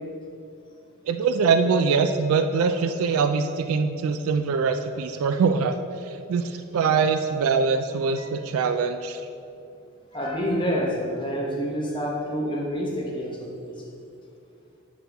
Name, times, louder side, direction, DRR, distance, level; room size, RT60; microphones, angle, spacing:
voice 1, 1.1-9.2, right 5 dB, 80° right, 8 dB, 0.3 m, -23 dB
voice 2, 10.1-13.8, equal, 20° left, -2 dB, 1.0 m, -28 dB
9.4 x 4.3 x 3.5 m, 2.5 s
head